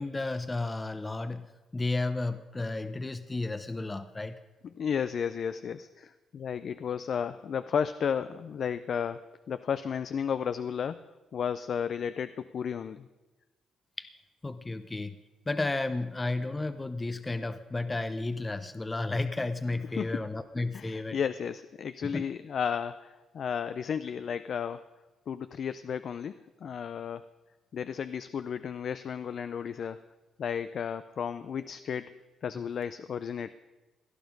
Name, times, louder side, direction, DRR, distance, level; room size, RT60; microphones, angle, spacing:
voice 1, 0.0-1.5 1.7-4.4 14.0-14.1 14.4-15.2 15.5-21.2 22.1-22.2, left 2 dB, 20° left, 11 dB, 0.7 m, -32 dB
voice 2, 4.7-9.2 9.5-13.1 20.0-20.2 20.7-24.8 25.3-27.2 27.7-30.0 30.4-32.1 32.4-33.5, left 7 dB, 55° left, 12 dB, 0.5 m, -33 dB
17.5 x 11.0 x 5.3 m, 1.2 s
cardioid pair, 90°, 0 cm